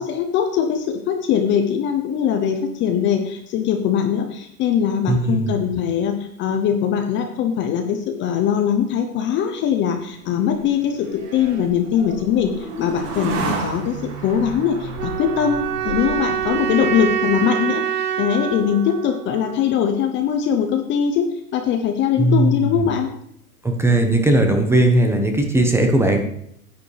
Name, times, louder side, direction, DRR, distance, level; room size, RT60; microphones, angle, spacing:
voice 1, 0.0-15.6 15.8-21.2 21.5-23.1, left 8 dB, 25° left, 5 dB, 0.8 m, -21 dB
voice 2, 5.1-5.5 22.2-22.9 23.6-26.2, right 1 dB, 5° right, 4 dB, 1.0 m, -18 dB
sound 1, 10.0-17.4, right 3 dB, 40° right, 2.4 m, -32 dB
sound 2, 15.0-20.0, right 9 dB, 80° right, 0.9 m, -25 dB
10.5 x 9.2 x 3.3 m, 0.70 s
hypercardioid pair, 125°, 47 cm